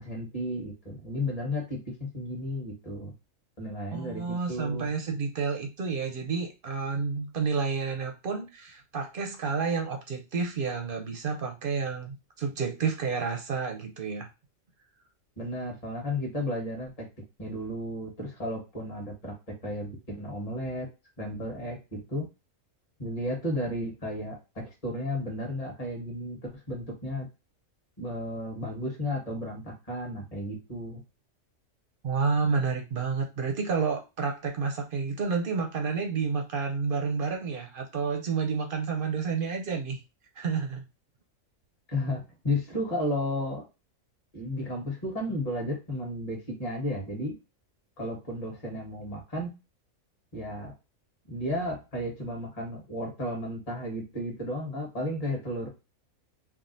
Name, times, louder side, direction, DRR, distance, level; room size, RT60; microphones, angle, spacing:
voice 1, 0.0-3.1 3.6-4.9 15.4-17.0 17.4-19.3 19.6-20.9 21.2-22.3 23.0-27.2 28.0-31.0 41.9-43.6 44.3-47.4 48.0-49.5 50.3-50.7 51.3-55.7, left 1 dB, 30° left, -1 dB, 1.3 m, -33 dB
voice 2, 3.9-14.3 32.0-40.0 40.4-40.8, right 5 dB, 55° right, 3 dB, 0.6 m, -30 dB
3.5 x 2.4 x 2.6 m, 0.28 s
omnidirectional pair, 1.4 m